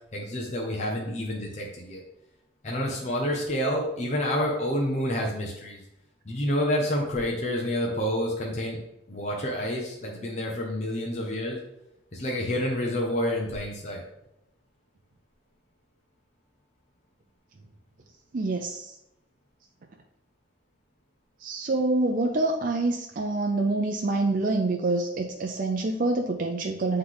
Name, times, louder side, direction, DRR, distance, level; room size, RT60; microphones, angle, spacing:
voice 1, 0.1-2.0 2.6-5.8 6.3-8.8 9.1-11.6 12.1-14.0, equal, 40° left, -2 dB, 0.9 m, -28 dB
voice 2, 18.3-18.9 21.4-27.0, right 2 dB, 50° right, 2 dB, 0.5 m, -26 dB
7.8 x 3.2 x 3.9 m, 0.85 s
head